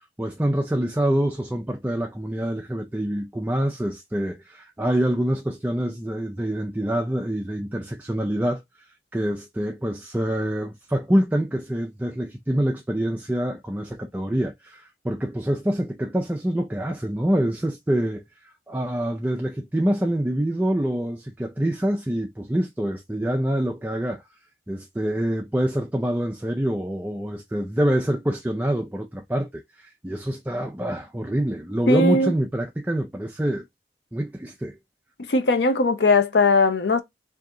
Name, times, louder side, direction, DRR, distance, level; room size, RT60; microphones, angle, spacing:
voice 1, 0.2-8.6 9.1-18.2 18.7-24.2 24.7-33.6 34.1-34.7, right 1 dB, 10° right, 0.3 m, -26 dB
voice 2, 31.9-32.3 35.3-37.0, left 3 dB, 80° left, 0.7 m, -19 dB
3.7 x 2.7 x 3.6 m
head